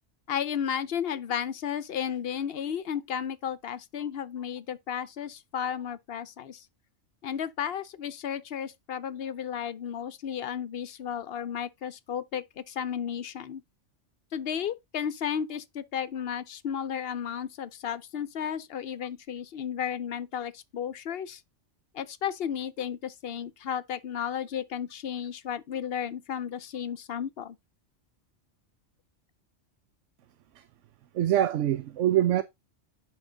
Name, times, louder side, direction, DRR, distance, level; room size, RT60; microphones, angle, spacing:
voice 1, 0.3-6.6 7.2-13.6 14.3-21.4 21.9-27.6, left 8 dB, 60° left, 0.8 m, -33 dB
voice 2, 31.1-32.4, right 12 dB, 75° right, 1.0 m, -24 dB
10.5 x 5.0 x 3.8 m
omnidirectional pair, 1.3 m